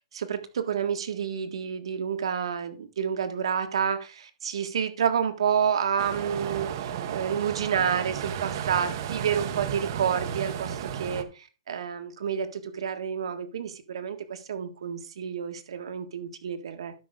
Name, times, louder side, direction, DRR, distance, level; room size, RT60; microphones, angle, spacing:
voice 1, 0.1-16.9, right 7 dB, 70° right, 8 dB, 1.5 m, -29 dB
sound 1, 6.0-11.2, right 9 dB, 45° right, 0.9 m, -33 dB
12.5 x 5.6 x 3.7 m, 0.33 s
hypercardioid pair, 165°, 3 cm